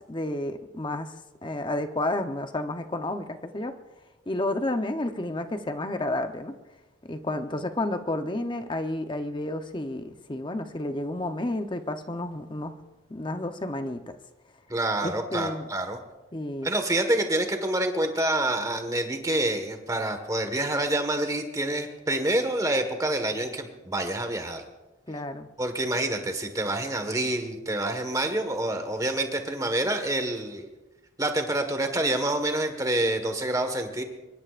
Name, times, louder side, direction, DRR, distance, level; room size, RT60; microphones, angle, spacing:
voice 1, 0.1-1.1 1.4-3.8 4.3-6.6 7.1-12.8 13.1-14.2 15.0-15.7 16.3-16.7 25.1-25.5, left 1 dB, 25° left, 7 dB, 0.8 m, -31 dB
voice 2, 14.7-16.0 16.6-24.6 25.6-30.7 31.2-34.0, right 1 dB, 15° right, 6 dB, 1.5 m, -27 dB
24.5 x 22.5 x 2.5 m, 1.2 s
head